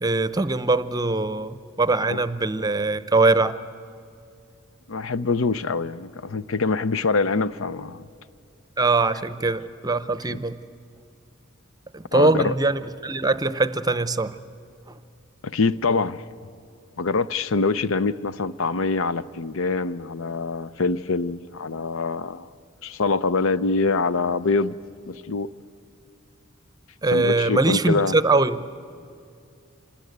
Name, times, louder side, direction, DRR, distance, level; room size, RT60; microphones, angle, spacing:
voice 1, 0.0-3.6 8.8-10.6 11.9-14.4 27.0-28.7, right 3 dB, 20° right, 14 dB, 0.7 m, -22 dB
voice 2, 4.9-8.0 10.3-10.4 12.1-12.5 15.4-16.2 17.0-22.5 22.8-24.7 25.1-25.5 27.1-28.2, left 4 dB, 80° left, 16 dB, 0.7 m, -24 dB
26.5 x 20.0 x 9.4 m, 2.4 s
head